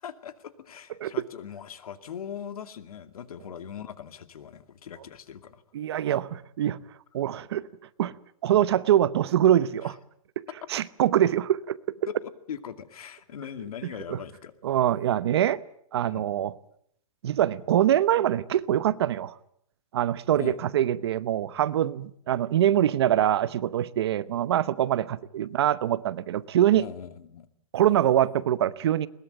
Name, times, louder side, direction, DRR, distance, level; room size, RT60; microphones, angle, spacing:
voice 1, 0.0-5.6 9.8-9.9 12.1-14.5 16.1-16.3 20.3-20.6 26.8-27.5, left 8 dB, 80° left, 2.4 m, -40 dB
voice 2, 5.7-6.8 7.1-7.7 8.0-8.1 8.4-10.0 10.7-11.8 14.1-14.2 14.6-15.6 15.9-16.5 17.2-19.3 19.9-26.8 27.7-29.1, right 11 dB, 45° right, 0.9 m, -24 dB
21.5 x 21.0 x 9.0 m
hypercardioid pair, 180°, 19 cm